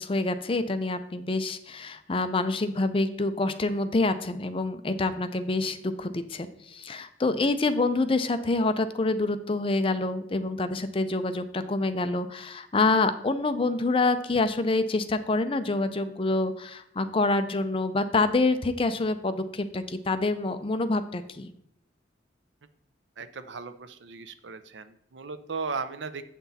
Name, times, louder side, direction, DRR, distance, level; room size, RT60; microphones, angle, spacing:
voice 1, 0.0-21.5, left 2 dB, 30° left, 10 dB, 0.5 m, -27 dB
voice 2, 23.2-26.2, right 4 dB, 75° right, 12 dB, 0.6 m, -36 dB
8.0 x 6.0 x 4.1 m, 0.76 s
head